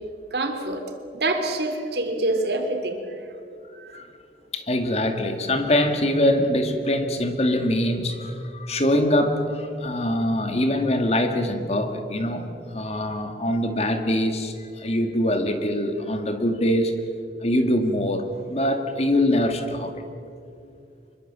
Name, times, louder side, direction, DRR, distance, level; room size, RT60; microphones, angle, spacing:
voice 1, 0.3-0.8 1.1-3.2 3.8-4.0, right 2 dB, 65° right, 5 dB, 3.0 m, -26 dB
voice 2, 4.5-16.9 17.4-19.9, left 1 dB, 35° left, 6 dB, 2.0 m, -23 dB
25.5 x 22.5 x 7.4 m, 2.5 s
head